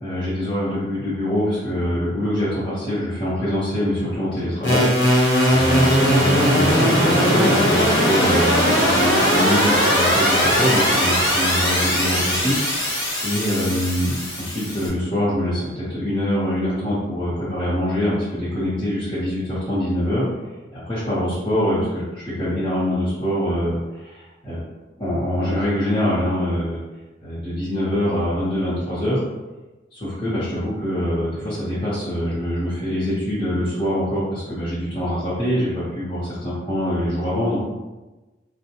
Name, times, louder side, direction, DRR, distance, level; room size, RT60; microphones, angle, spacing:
voice 1, 0.0-20.3 20.7-24.6 25.0-26.8 27.2-29.2 29.9-37.6, equal, 30° left, -11 dB, 0.9 m, -24 dB
sound 1, 4.6-14.9, equal, 85° left, 0.9 m, -19 dB
4.3 x 2.2 x 2.9 m, 1.1 s
head